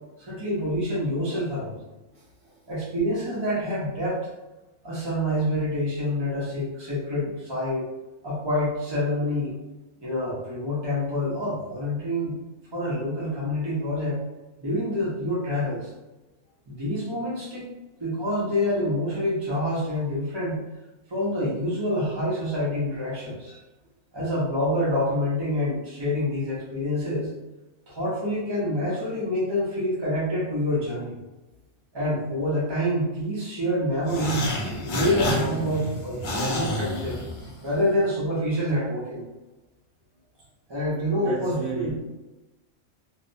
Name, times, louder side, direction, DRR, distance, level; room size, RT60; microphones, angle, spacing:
voice 1, 0.2-1.8 2.7-4.2 4.8-7.8 8.2-9.5 10.0-12.3 12.7-14.2 14.6-15.9 16.7-17.6 18.0-20.6 21.1-23.6 24.1-27.3 27.9-31.2 31.9-34.5 34.8-39.2 40.7-41.9, left 1 dB, 35° right, -8 dB, 0.4 m, -27 dB
voice 2, 2.1-2.6 35.7-36.4 41.2-41.9, right 3 dB, 75° right, -5 dB, 1.0 m, -36 dB
sound 1, 34.0-37.8, left 1 dB, 90° left, 0.4 m, -29 dB
2.7 x 2.0 x 2.6 m, 1.1 s
omnidirectional pair, 1.5 m